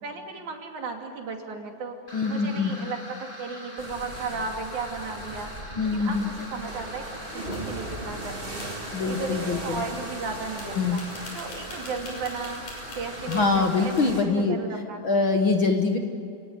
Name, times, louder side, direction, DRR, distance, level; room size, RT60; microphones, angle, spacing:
voice 1, 0.0-2.0 2.3-7.1 7.3-8.7 9.1-11.0 11.3-12.6 13.0-13.9 14.3-15.3, right 4 dB, 70° right, 2 dB, 4.1 m, -35 dB
voice 2, 2.1-2.7 5.8-6.3 8.9-9.8 10.7-11.0 13.3-14.6 15.0-16.0, left 4 dB, 50° left, 4 dB, 1.8 m, -24 dB
sound 1, 2.1-13.9, equal, 10° left, 3.5 m, -43 dB
sound 2, 3.8-14.2, right 2 dB, 15° right, 3.0 m, -39 dB
sound 3, 7.3-8.0 8.6-8.8 10.2-10.3 10.6-14.0, left 2 dB, 80° left, 7.6 m, -45 dB
29.0 x 18.5 x 9.5 m, 2.5 s
omnidirectional pair, 3.5 m